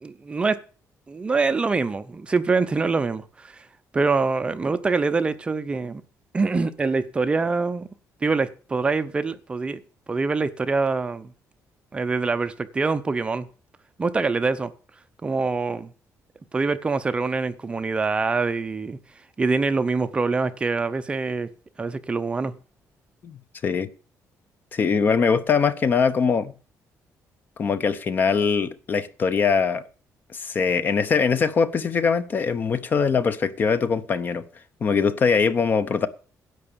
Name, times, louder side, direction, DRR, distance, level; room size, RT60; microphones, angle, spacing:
voice 1, 0.0-0.6 1.1-3.7 3.9-6.0 6.3-7.9 8.2-9.8 10.1-11.3 11.9-13.5 14.0-14.7 15.2-15.9 16.5-19.0 19.4-21.5 21.8-22.5, right 4 dB, 20° right, 0.7 m, -24 dB
voice 2, 23.2-23.9 24.7-26.5 27.6-29.8 30.3-34.4 34.8-36.1, left 5 dB, 35° left, 0.8 m, -22 dB
11.0 x 7.9 x 6.8 m
cardioid pair, 175°, 6 cm